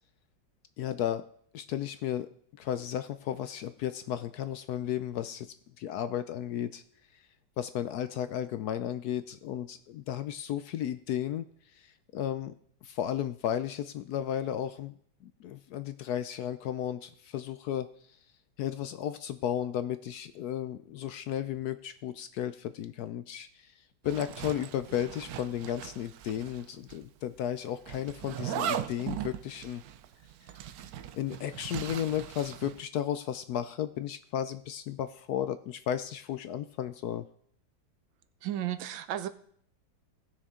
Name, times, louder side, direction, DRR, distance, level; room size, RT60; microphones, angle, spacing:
voice 1, 0.8-1.3 1.5-2.3 2.6-6.8 7.6-11.5 11.7-12.5 12.8-15.0 15.2-17.9 18.6-23.7 24.0-29.8 31.1-37.3, left 10 dB, 70° left, 12 dB, 0.9 m, -34 dB
Zipper (clothing), 24.1-26.6 26.9-27.0 27.9-32.8, right 10 dB, 70° right, 0.9 m, -38 dB
voice 2, 38.4-39.3, right 11 dB, 85° right, 11 dB, 1.5 m, -33 dB
18.0 x 6.5 x 3.7 m, 0.62 s
omnidirectional pair, 2.0 m